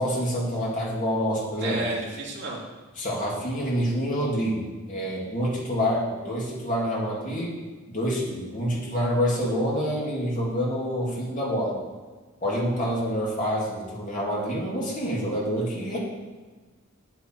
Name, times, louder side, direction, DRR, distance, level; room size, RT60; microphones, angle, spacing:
voice 1, 0.0-1.8 3.0-4.6 4.9-7.6 7.9-11.8 12.4-16.0, equal, 40° left, -4 dB, 2.9 m, -27 dB
voice 2, 1.6-2.6 15.9-16.0, right 2 dB, 55° right, -4 dB, 2.6 m, -31 dB
9.5 x 8.3 x 4.8 m, 1.3 s
head